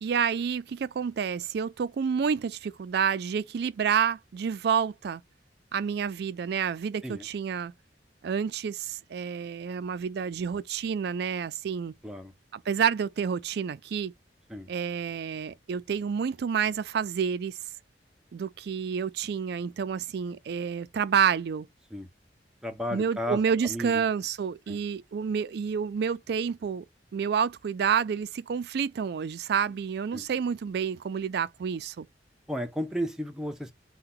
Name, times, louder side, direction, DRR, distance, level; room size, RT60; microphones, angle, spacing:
voice 1, 0.0-5.2 5.7-7.7 8.2-11.9 12.5-14.1 14.7-17.6 18.3-21.7 22.9-26.9 27.1-32.1, right 7 dB, 65° right, 0.3 m, -29 dB
voice 2, 22.6-24.0 24.7-24.8 30.1-30.3 32.5-33.7, equal, 5° right, 0.5 m, -33 dB
2.7 x 2.2 x 3.7 m
head